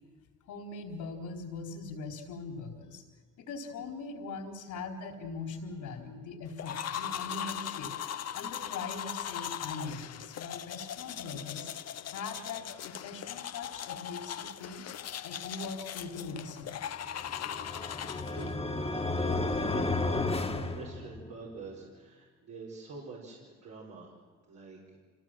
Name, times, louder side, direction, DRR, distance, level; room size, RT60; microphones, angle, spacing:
voice 1, 0.5-3.0 3.4-8.0 8.3-11.7 12.1-14.9 15.2-17.2, left 4 dB, 80° left, 1 dB, 4.1 m, -41 dB
sound 1, 6.6-18.5, left 9 dB, 55° left, 0.9 m, -39 dB
sound 2, 17.2-21.5, left 2 dB, 20° left, 1.9 m, -32 dB
voice 2, 17.8-18.6 18.9-24.1 24.5-25.0, right 4 dB, 70° right, -6 dB, 4.8 m, -47 dB
26.5 x 17.5 x 7.6 m, 1.5 s
cardioid pair, 90°, 30 cm